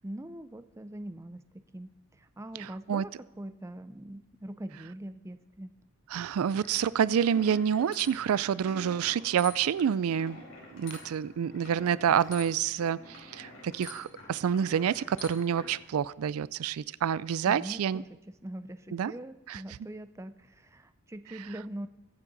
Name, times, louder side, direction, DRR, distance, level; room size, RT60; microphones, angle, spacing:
voice 1, 0.0-1.4 1.7-1.9 2.2-3.1 3.4-5.7 17.5-18.1 18.4-21.9, right 1 dB, 15° right, 11 dB, 0.5 m, -42 dB
voice 2, 2.6-3.0 6.1-10.4 10.7-18.0 18.9-19.1 19.5-19.6 21.4-21.5, right 8 dB, 85° right, 19 dB, 0.4 m, -28 dB
sound 1, 6.5-15.8, left 3 dB, 65° left, 4.4 m, -48 dB
22.0 x 8.3 x 4.0 m, 1.1 s
head